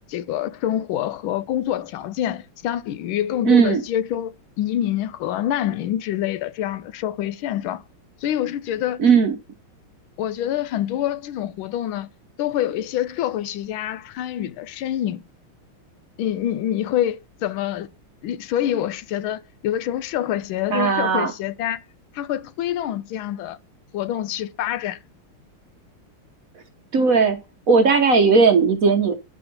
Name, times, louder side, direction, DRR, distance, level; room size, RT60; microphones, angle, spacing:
voice 1, 0.1-7.8 8.2-9.0 10.2-12.1 12.4-15.2 16.2-17.9 18.2-21.8 22.1-23.6 23.9-25.0, left 11 dB, 75° left, 1.4 m, -26 dB
voice 2, 3.4-3.8 9.0-9.3 20.7-21.3 26.9-27.4 27.7-29.1, right 5 dB, 55° right, 1.1 m, -16 dB
10.5 x 4.9 x 5.3 m
omnidirectional pair, 2.3 m